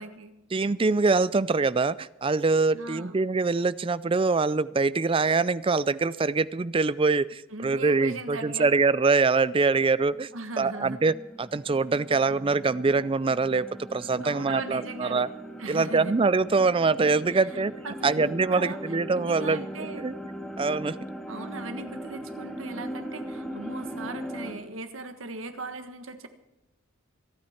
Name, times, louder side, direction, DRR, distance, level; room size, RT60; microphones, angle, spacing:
voice 1, 0.0-0.3 2.7-3.2 7.5-8.7 10.3-11.0 14.2-15.3 15.6-16.1 17.3-17.4 17.8-18.8 19.1-20.0 21.3-26.3, right 3 dB, 80° right, 8 dB, 1.5 m, -38 dB
voice 2, 0.5-10.3 10.6-13.7 13.9-15.3 15.7-17.7 18.0-20.1 20.6-21.0, right 4 dB, 25° right, 17 dB, 0.4 m, -24 dB
sound 1, 10.1-24.5, equal, 5° left, 2.2 m, -39 dB
27.0 x 9.6 x 4.4 m, 0.98 s
head